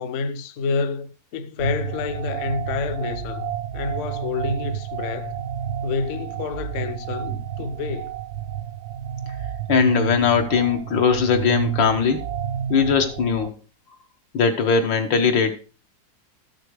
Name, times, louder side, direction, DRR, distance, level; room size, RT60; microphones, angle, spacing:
voice 1, 0.0-5.4 5.8-8.1, left 4 dB, 55° left, 0.9 m, -28 dB
sound 1, 1.6-13.5, right 11 dB, 70° right, 1.2 m, -31 dB
voice 2, 9.7-12.3 12.7-13.6 14.3-15.5, left 6 dB, 85° left, 2.0 m, -20 dB
13.0 x 6.7 x 4.7 m
omnidirectional pair, 2.0 m